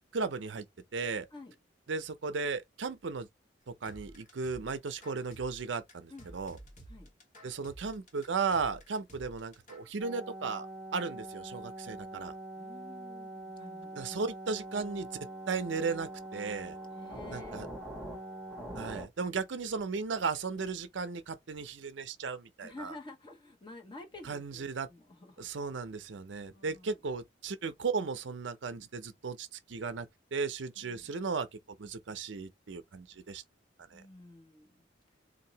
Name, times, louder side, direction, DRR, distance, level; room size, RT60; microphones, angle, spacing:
voice 1, 0.1-0.7 0.9-1.3 1.9-3.3 3.7-6.6 7.4-10.7 10.9-12.3 14.0-15.1 15.5-16.8 17.3-17.7 18.7-22.9 24.3-24.9 25.4-31.5 31.8-33.4 33.9-34.0, right 4 dB, 70° right, 0.6 m, -35 dB
sound 1, 3.8-9.9, right 1 dB, 40° left, 1.3 m, -52 dB
sound 2, 10.0-19.1, right 1 dB, ahead, 1.2 m, -43 dB
voice 2, 12.6-14.2 16.9-17.7 22.6-25.5 26.5-27.0 30.8-31.1 33.9-34.8, left 2 dB, 25° left, 1.1 m, -50 dB
4.0 x 2.8 x 2.8 m
head